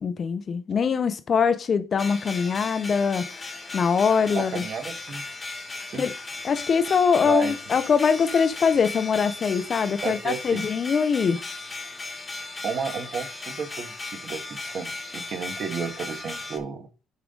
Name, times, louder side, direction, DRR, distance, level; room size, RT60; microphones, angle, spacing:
voice 1, 0.0-3.3 3.7-4.6 6.0-6.1 6.4-11.4, left 6 dB, 30° left, 0.5 m, -23 dB
sound 1, 2.0-16.6, left 3 dB, 15° left, 1.2 m, -36 dB
voice 2, 4.3-5.2 5.9-6.0 7.2-7.6 10.0-10.7 12.6-16.9, right 6 dB, 40° right, 1.6 m, -32 dB
9.6 x 4.9 x 3.7 m
cardioid pair, 165°, 0 cm